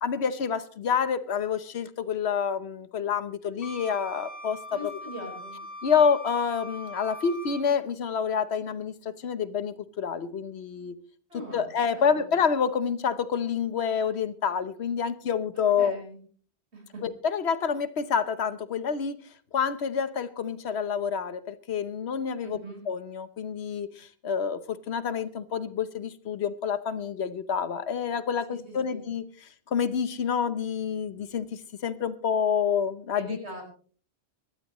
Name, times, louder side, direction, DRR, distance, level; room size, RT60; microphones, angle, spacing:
voice 1, 0.0-4.9 5.8-10.9 11.5-15.9 17.0-19.2 19.5-22.6 22.9-29.2 29.7-33.4, left 6 dB, 80° left, 1.2 m, -28 dB
Wind instrument woodwind instrument, 3.6-7.7, left 1 dB, 35° left, 2.7 m, -41 dB
voice 2, 4.7-5.6 11.3-11.7 11.9-12.3 15.8-16.2 16.7-17.0 22.4-22.8 28.5-29.1 33.2-33.6, equal, 85° right, 5.3 m, -41 dB
24.5 x 12.5 x 3.1 m
omnidirectional pair, 1.1 m